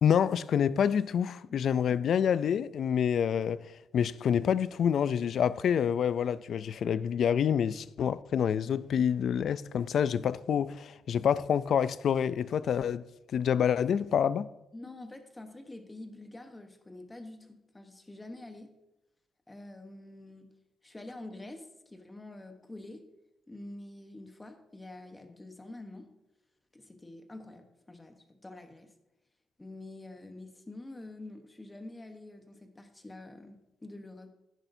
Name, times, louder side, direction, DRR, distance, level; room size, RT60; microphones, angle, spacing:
voice 1, 0.0-3.6 3.9-13.0 13.3-14.5, left 8 dB, 60° left, 0.3 m, -27 dB
voice 2, 14.7-18.8 19.5-20.5 20.8-23.1 23.5-26.1 26.7-28.9 29.6-34.3, left 2 dB, 15° left, 1.0 m, -47 dB
10.5 x 10.0 x 2.7 m
cardioid pair, 120°, 0 cm